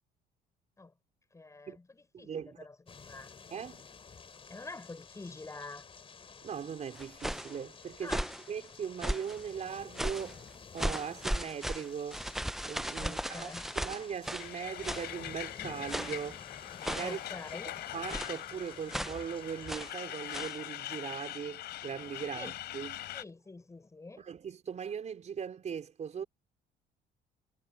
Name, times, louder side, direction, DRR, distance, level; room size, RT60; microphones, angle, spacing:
voice 1, 1.3-3.3 4.5-5.8 8.0-8.3 13.0-13.7 17.0-17.8 22.3-22.6 23.1-24.3, left 3 dB, 20° left, 6.5 m, -46 dB
voice 2, 2.1-2.6 3.5-3.8 6.4-8.2 8.5-12.2 12.7-13.5 13.8-16.4 16.9-17.2 17.9-23.0 24.2-26.2, right 7 dB, 45° right, 4.6 m, -39 dB
sound 1, 2.9-19.9, left 5 dB, 35° left, 3.6 m, -51 dB
sound 2, 6.9-7.5 8.0-8.4 9.0-9.4 9.9-10.3 10.8-14.5 14.8-15.1 15.9-16.3 16.8-17.2 18.1-18.4 18.9-19.2 19.7-20.0 20.3-20.6, equal, ahead, 0.5 m, -36 dB
Truck, 14.4-23.2, left 14 dB, 75° left, 5.0 m, -42 dB
cardioid pair, 110°, 17 cm